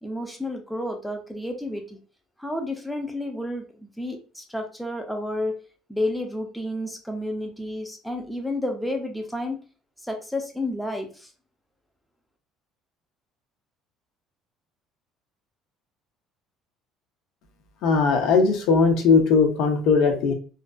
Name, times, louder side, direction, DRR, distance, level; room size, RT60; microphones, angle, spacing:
voice 1, 0.0-2.0 2.4-3.6 4.0-5.6 5.9-9.6 10.1-11.1, left 1 dB, ahead, 2 dB, 0.5 m, -30 dB
voice 2, 17.8-20.3, left 4 dB, 70° left, 4 dB, 0.6 m, -19 dB
2.5 x 2.2 x 2.2 m, 0.37 s
cardioid pair, 115°, 0 cm